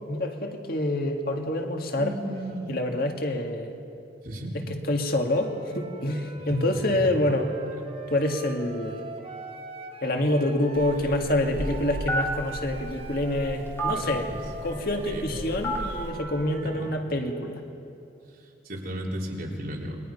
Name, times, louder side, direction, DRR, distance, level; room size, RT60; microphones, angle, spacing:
voice 1, 0.1-2.1 2.7-3.7 4.5-7.5 8.1-9.0 10.0-14.3 14.6-17.6, left 1 dB, 55° left, 3 dB, 2.0 m, -27 dB
voice 2, 1.9-2.8 4.2-4.5 6.5-7.0 11.0-11.2 11.5-11.7 13.9-14.4 15.1-15.4 16.6-16.9 18.6-20.0, right 1 dB, 55° right, -2 dB, 3.9 m, -35 dB
Wind instrument woodwind instrument, 5.2-11.0 11.4-17.0, right 3 dB, 35° right, 2.9 m, -43 dB
Telephone, 10.8-16.1, right 1 dB, 15° left, 3.3 m, -32 dB
29.0 x 21.5 x 5.5 m, 2.7 s
head